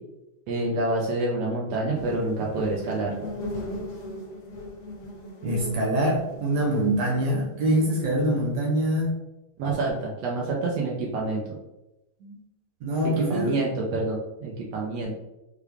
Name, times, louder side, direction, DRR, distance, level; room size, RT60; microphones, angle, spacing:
voice 1, 0.5-3.3 9.6-11.4 13.3-15.2, right 2 dB, 85° right, -3 dB, 1.4 m, -27 dB
sound 1, 1.9-8.5, left 1 dB, 60° left, 1.6 m, -38 dB
voice 2, 5.4-9.2 12.2-12.4 12.8-13.6 15.0-15.1, right 1 dB, 65° right, -2 dB, 2.0 m, -24 dB
6.4 x 2.3 x 3.5 m, 0.94 s
omnidirectional pair, 3.9 m